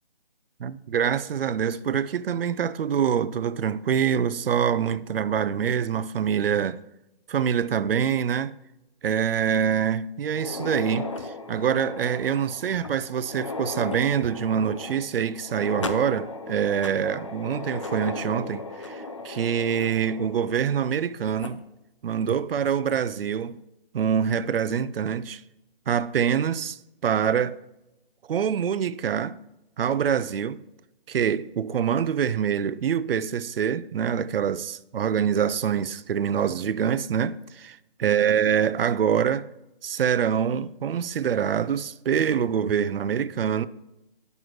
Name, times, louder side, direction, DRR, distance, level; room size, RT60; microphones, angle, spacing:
voice 1, 0.6-6.8 7.3-8.6 9.0-21.6 22.0-23.6 23.9-25.4 25.9-27.6 28.3-29.4 29.8-30.6 31.1-39.5 39.8-43.7, right 8 dB, 70° right, 0.5 m, -25 dB
sound 1, 10.3-21.0 21.4-21.5 22.3-22.4 22.9-23.0 24.3-24.6, left 3 dB, 35° left, 0.4 m, -36 dB
9.2 x 6.6 x 3.0 m
hypercardioid pair, 165°, 30 cm